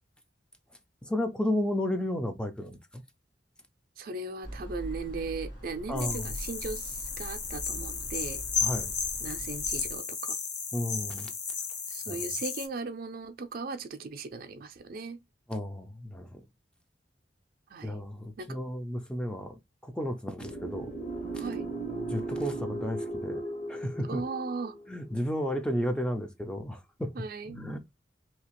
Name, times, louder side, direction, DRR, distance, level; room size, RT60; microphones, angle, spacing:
voice 1, 1.0-3.0 5.9-6.3 8.6-8.9 10.7-11.3 12.1-12.2 15.5-16.4 17.8-20.9 21.3-21.5 22.1-23.4 23.7-24.2 24.9-27.2 27.5-28.0, left 1 dB, 5° left, 0.4 m, -33 dB
voice 2, 4.0-8.4 9.2-10.4 11.9-15.2 17.7-17.9 18.4-18.6 21.4-21.7 24.1-24.7 27.2-27.6, right 3 dB, 55° right, 0.5 m, -38 dB
sound 1, 4.4-10.0, equal, 90° left, 1.5 m, -42 dB
sound 2, 6.0-12.7, left 6 dB, 70° left, 0.9 m, -34 dB
sound 3, 20.4-25.5, right 2 dB, 35° left, 0.9 m, -37 dB
2.8 x 2.4 x 2.9 m
head